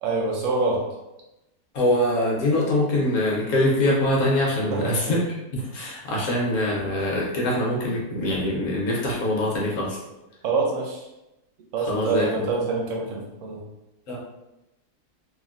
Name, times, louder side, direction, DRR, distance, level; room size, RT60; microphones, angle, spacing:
voice 1, 0.0-0.9 4.7-5.1 10.4-11.1 11.7-13.6, right 3 dB, 70° right, -1 dB, 0.8 m, -26 dB
voice 2, 1.7-5.2 5.5-10.0 11.9-12.3 14.1-14.2, left 1 dB, 60° left, -3 dB, 1.0 m, -23 dB
3.4 x 2.1 x 2.4 m, 0.96 s
omnidirectional pair, 1.8 m